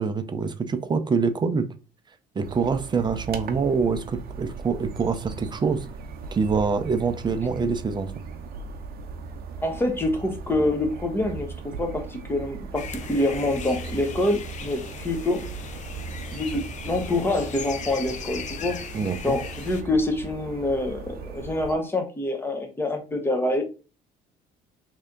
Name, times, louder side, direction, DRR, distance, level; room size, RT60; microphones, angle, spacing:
voice 1, 0.0-1.7 2.4-5.9 6.3-8.1 18.9-19.4, right 5 dB, 25° right, 9 dB, 0.5 m, -25 dB
sound 1, 2.4-21.7, right 5 dB, 60° right, 0.7 m, -38 dB
voice 2, 9.6-15.4 16.3-18.8 19.2-23.6, left 2 dB, 15° left, 4 dB, 0.9 m, -26 dB
sound 2, 12.8-19.8, left 7 dB, 45° left, 0.5 m, -39 dB
3.2 x 2.8 x 3.7 m, 0.34 s
cardioid pair, 110°, 17 cm